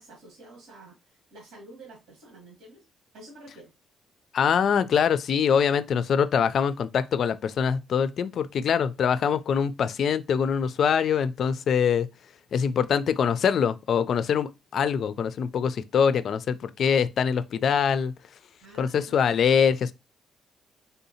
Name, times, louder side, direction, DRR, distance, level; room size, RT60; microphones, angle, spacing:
voice 1, 0.0-2.8 3.1-3.7 18.6-19.2, right 2 dB, 90° right, 1.4 m, -49 dB
voice 2, 4.3-12.1 12.5-18.1 18.8-19.9, left 7 dB, 60° left, 0.3 m, -24 dB
3.5 x 2.7 x 2.7 m
cardioid pair, 90°, 0 cm